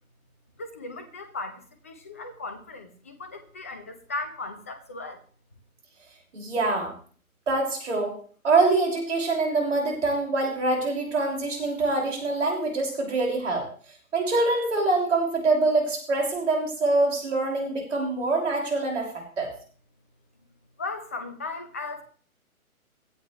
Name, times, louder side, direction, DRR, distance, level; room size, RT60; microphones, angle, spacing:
voice 1, 0.6-5.2 20.8-22.0, left 3 dB, 10° left, 9 dB, 0.5 m, -37 dB
voice 2, 6.3-6.9 7.5-8.1 8.4-13.7 14.1-19.1 19.4-19.5, right 3 dB, 55° right, 0 dB, 6.1 m, -24 dB
16.5 x 12.5 x 3.3 m, 0.43 s
figure-of-eight pair, 140°, 43 cm